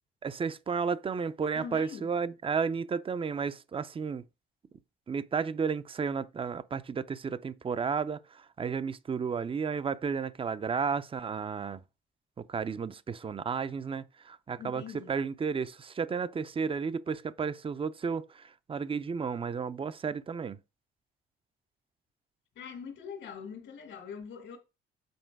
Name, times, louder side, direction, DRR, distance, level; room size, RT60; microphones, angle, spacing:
voice 1, 0.2-4.2 5.1-11.8 12.4-20.6, right 5 dB, 25° right, 0.5 m, -33 dB
voice 2, 1.5-2.1 14.6-15.1 22.6-24.6, left 6 dB, 75° left, 2.0 m, -43 dB
8.0 x 4.4 x 4.7 m
cardioid pair, 90°, 20 cm